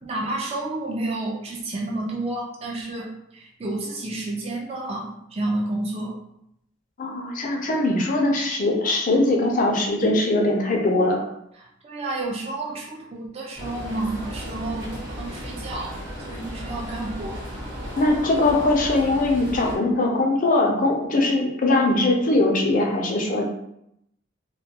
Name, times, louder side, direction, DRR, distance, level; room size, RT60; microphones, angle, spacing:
voice 1, 0.0-6.2 11.8-17.5, right 2 dB, 30° right, -2 dB, 0.4 m, -30 dB
voice 2, 7.0-11.2 18.0-23.6, left 2 dB, 45° left, 1 dB, 0.5 m, -21 dB
sound 1, 13.6-19.8, equal, 60° right, 0.9 m, -35 dB
2.2 x 2.2 x 2.8 m, 0.76 s
head